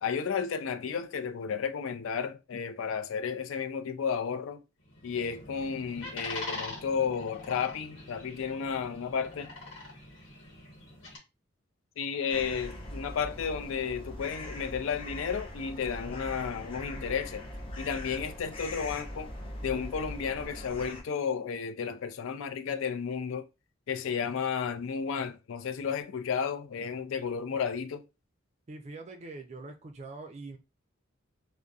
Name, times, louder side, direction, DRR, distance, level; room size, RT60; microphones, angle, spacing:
voice 1, 0.0-4.6 5.0-9.5 12.0-17.5 17.8-19.3 19.6-23.5 23.9-28.0, left 6 dB, 80° left, 0.4 m, -33 dB
sound 1, 4.8-11.2, left 2 dB, 65° left, 1.0 m, -43 dB
sound 2, 12.3-21.0, left 1 dB, 25° left, 0.6 m, -41 dB
voice 2, 28.7-30.6, right 3 dB, 35° right, 0.4 m, -43 dB
2.6 x 2.1 x 2.3 m
head